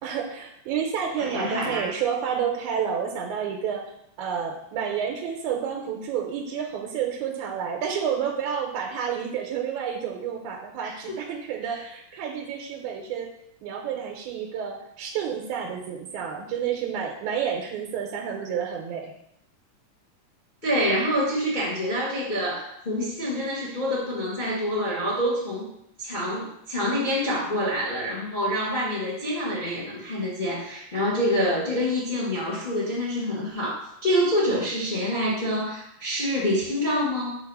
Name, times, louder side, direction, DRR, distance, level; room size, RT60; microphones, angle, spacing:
voice 1, 0.0-3.8 4.2-13.3 13.6-19.1, right 7 dB, 85° right, 1 dB, 2.1 m, -30 dB
voice 2, 1.2-1.9 10.8-11.2 11.6-11.8 20.6-25.6 26.0-37.4, equal, 35° left, -6 dB, 0.7 m, -26 dB
6.4 x 2.8 x 5.3 m, 0.77 s
omnidirectional pair, 3.4 m